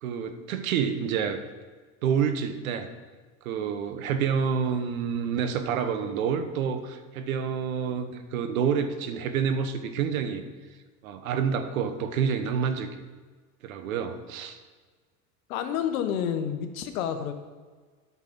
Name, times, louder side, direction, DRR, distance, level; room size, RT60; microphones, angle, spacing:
voice 1, 0.0-1.4 2.0-2.9 3.4-10.4 11.0-12.9 13.6-14.6, right 7 dB, 85° right, 9 dB, 1.1 m, -28 dB
voice 2, 15.5-17.3, left 8 dB, 80° left, 8 dB, 1.2 m, -29 dB
9.6 x 6.0 x 5.9 m, 1.4 s
supercardioid pair, 110°, 41 cm